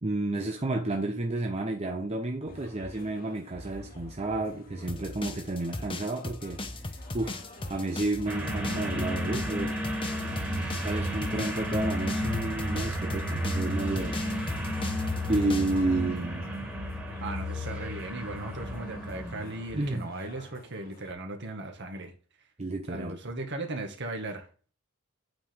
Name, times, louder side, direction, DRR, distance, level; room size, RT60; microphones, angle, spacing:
voice 1, 0.0-7.3 7.7-9.8 10.8-14.2 15.3-16.5 19.7-20.1 22.6-23.2, right 2 dB, 30° right, 0.7 m, -31 dB
sound 1, 2.5-21.1, equal, 40° left, 1.8 m, -47 dB
sound 2, 4.9-15.8, left 2 dB, 25° left, 0.9 m, -38 dB
sound 3, 8.3-19.7, equal, 10° right, 2.1 m, -32 dB
voice 2, 17.2-22.1 22.9-24.5, right 2 dB, 55° right, 1.7 m, -37 dB
8.7 x 4.9 x 3.5 m
head